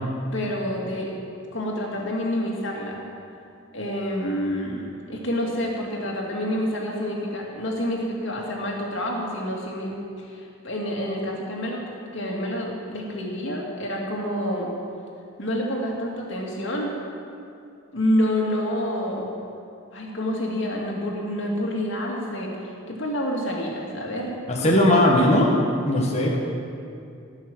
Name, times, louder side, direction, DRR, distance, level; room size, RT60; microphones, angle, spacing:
voice 1, 0.3-1.2 1.5-3.0 3.7-14.7 15.4-16.9 17.9-19.3 19.9-24.8, equal, 60° left, -2 dB, 2.5 m, -28 dB
voice 2, 24.5-25.5 25.9-26.4, left 1 dB, 30° left, -2 dB, 1.6 m, -18 dB
17.5 x 6.5 x 7.8 m, 2.5 s
head